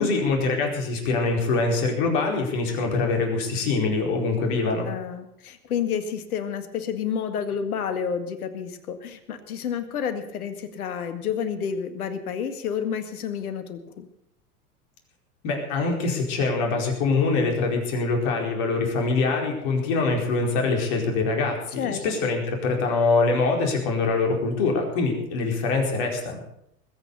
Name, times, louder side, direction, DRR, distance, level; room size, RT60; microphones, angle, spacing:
voice 1, 0.0-4.9 15.4-26.4, left 3 dB, 50° left, 2 dB, 4.7 m, -24 dB
voice 2, 4.8-14.1 21.7-22.3, left 7 dB, 70° left, 9 dB, 2.0 m, -30 dB
20.5 x 8.9 x 6.8 m, 0.76 s
hypercardioid pair, 90°, 46 cm